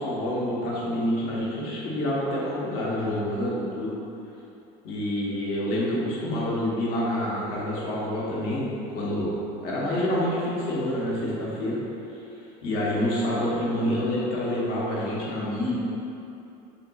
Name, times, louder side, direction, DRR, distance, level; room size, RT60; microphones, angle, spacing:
voice 1, 0.0-4.0 4.8-11.8 12.6-15.8, left 1 dB, 55° left, -6 dB, 1.1 m, -27 dB
5.5 x 3.9 x 2.3 m, 2.8 s
cardioid pair, 175°, 18 cm